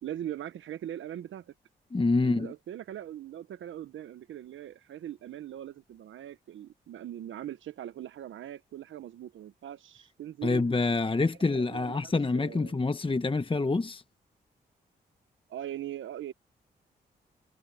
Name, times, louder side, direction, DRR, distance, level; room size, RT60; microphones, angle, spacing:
voice 1, 0.0-1.5 2.2-10.6 11.5-12.8 15.5-16.3, right 11 dB, 75° right, 1.2 m, -41 dB
voice 2, 1.9-2.5 10.4-14.0, left 3 dB, 25° left, 1.2 m, -27 dB
supercardioid pair, 45°, 20 cm